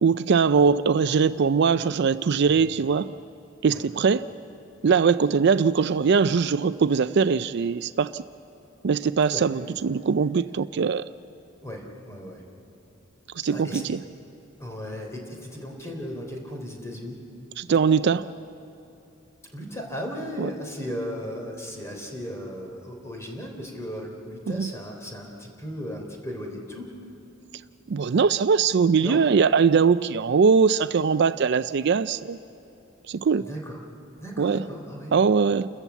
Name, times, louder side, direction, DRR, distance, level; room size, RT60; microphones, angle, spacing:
voice 1, 0.0-3.1 3.6-4.2 4.8-8.2 8.8-11.0 13.4-14.0 17.6-18.3 20.4-20.5 24.5-24.7 27.9-32.4 33.1-33.4 34.4-34.6 35.1-35.7, right 5 dB, 60° right, 14 dB, 0.4 m, -21 dB
voice 2, 11.6-12.4 13.4-14.0 14.6-17.2 19.5-26.9 29.0-29.2 33.4-33.8 34.2-35.1, equal, 15° left, 1 dB, 3.5 m, -36 dB
29.0 x 14.5 x 8.2 m, 2.9 s
head